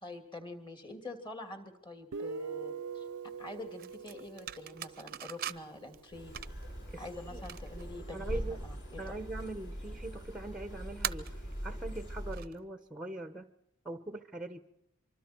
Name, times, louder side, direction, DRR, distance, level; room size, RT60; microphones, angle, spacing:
voice 1, 0.0-3.0 3.4-6.3 7.0-9.0, left 2 dB, 20° left, 6 dB, 2.8 m, -46 dB
Guitar, 2.1-5.6, right 5 dB, 80° right, 0.7 m, -43 dB
sound 1, 3.3-12.6, right 10 dB, 45° right, 0.7 m, -45 dB
sound 2, 6.1-12.4, equal, 55° left, 7.2 m, -42 dB
voice 2, 6.9-7.4 8.1-8.7 9.0-13.5 13.8-14.6, right 2 dB, 5° right, 10 dB, 1.0 m, -42 dB
25.0 x 25.0 x 4.5 m, 0.78 s
head